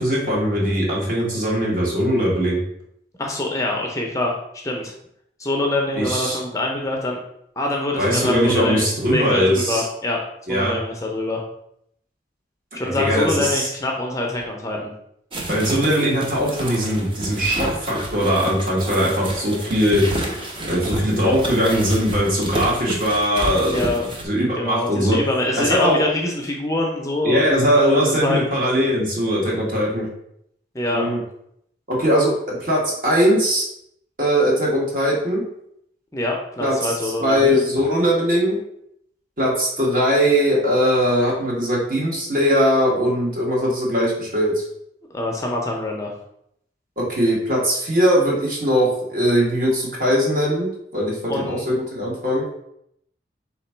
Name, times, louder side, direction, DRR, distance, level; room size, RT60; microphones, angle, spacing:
voice 1, 0.0-2.6 5.9-6.4 8.0-9.8 10.5-10.8 12.8-13.7 15.5-20.0 20.7-23.8 24.2-25.2 25.6-26.0 27.2-30.1 30.9-31.2 31.9-33.7 34.2-35.4 36.6-38.6 39.4-44.6 47.0-52.4, equal, 50° right, -3 dB, 1.3 m, -20 dB
voice 2, 3.2-4.3 4.6-4.9 5.4-7.2 7.6-10.2 10.5-11.4 12.7-14.9 23.7-24.0 24.5-27.5 27.8-28.6 30.7-31.1 36.1-37.6 45.1-46.1 51.3-51.8, left 2 dB, 20° left, 0 dB, 0.5 m, -25 dB
sound 1, 15.3-24.2, right 1 dB, 30° right, 0.6 m, -30 dB
3.5 x 2.9 x 4.3 m, 0.74 s
head